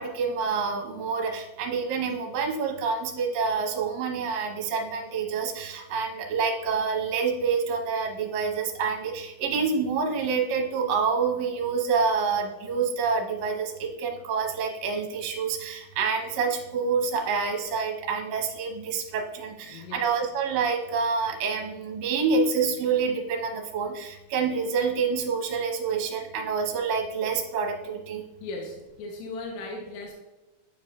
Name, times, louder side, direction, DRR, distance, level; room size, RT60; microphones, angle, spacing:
voice 1, 0.0-28.2, right 5 dB, 70° right, 2 dB, 2.1 m, -27 dB
voice 2, 19.6-20.0 28.4-30.1, left 2 dB, 70° left, 0 dB, 2.1 m, -37 dB
8.8 x 4.7 x 2.3 m, 1.0 s
omnidirectional pair, 3.6 m